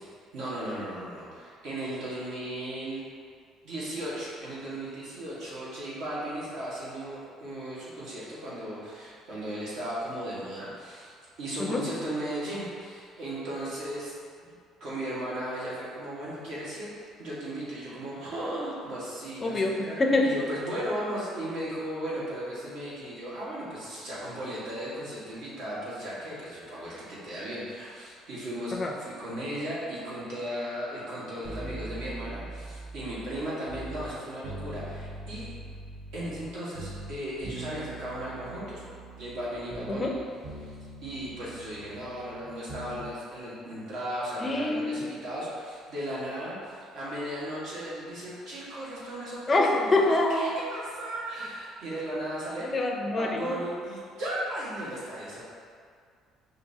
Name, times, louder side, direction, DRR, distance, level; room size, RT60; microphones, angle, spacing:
voice 1, 0.0-3.0 3.6-14.1 14.8-16.9 17.2-35.5 36.1-38.8 39.1-40.1 40.6-40.7 41.0-52.7 53.2-55.4, right 1 dB, 75° right, -8 dB, 1.3 m, -36 dB
voice 2, 19.4-20.3 28.7-28.9 39.9-40.1 44.4-45.1 49.5-50.6 52.6-53.5, left 2 dB, 20° left, 1 dB, 0.4 m, -25 dB
sound 1, 31.4-34.1 34.4-36.5 36.7-40.2 40.4-43.1 43.3-43.4, right 2 dB, 40° right, 0.6 m, -42 dB
5.0 x 2.6 x 2.7 m, 2.2 s
cardioid pair, 140°, 0 cm